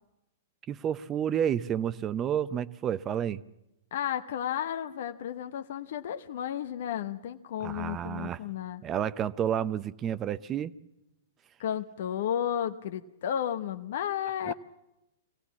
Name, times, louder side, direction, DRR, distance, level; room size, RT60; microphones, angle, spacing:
voice 1, 0.7-3.4 7.6-8.4 8.8-10.7 14.5-14.6, right 9 dB, 25° right, 16 dB, 0.8 m, -30 dB
voice 2, 3.9-8.8 11.6-14.5, left 10 dB, 65° left, 8 dB, 1.0 m, -33 dB
25.0 x 17.5 x 7.3 m, 0.89 s
hypercardioid pair, 120°, 0 cm